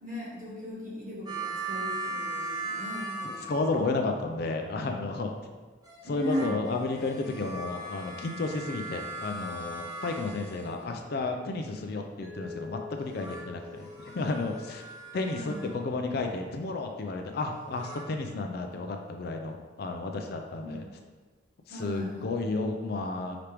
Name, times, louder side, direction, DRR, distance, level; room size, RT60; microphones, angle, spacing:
voice 1, 0.0-3.5 6.0-6.6 15.3-15.7 20.6-20.8 21.7-22.3, left 1 dB, 40° right, -6 dB, 1.3 m, -37 dB
sound 1, 1.3-4.1 5.8-11.1 12.9-15.8 17.5-18.0, right 2 dB, 20° right, 0.7 m, -39 dB
voice 2, 3.2-5.4 6.0-14.9 15.1-20.8 21.7-23.4, left 3 dB, 50° left, 4 dB, 0.4 m, -32 dB
Mallet percussion, 12.2-15.1, left 6 dB, 80° right, 0.9 m, -45 dB
4.9 x 3.3 x 2.9 m, 1.4 s
head